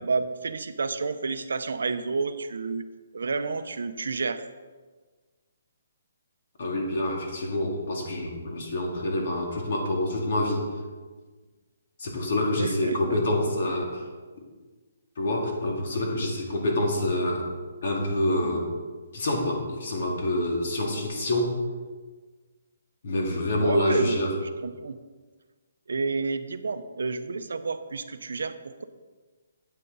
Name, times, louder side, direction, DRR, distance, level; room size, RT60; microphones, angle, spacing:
voice 1, 0.0-2.8 3.1-4.4 12.6-13.2 23.6-25.0 25.9-28.8, right 4 dB, 80° right, 10 dB, 0.7 m, -30 dB
voice 2, 6.6-10.6 12.0-14.0 15.2-17.5 17.8-18.7 19.1-21.6 23.0-24.3, left 1 dB, 50° left, 0 dB, 2.3 m, -27 dB
9.3 x 8.8 x 4.1 m, 1.4 s
hypercardioid pair, 170°, 0 cm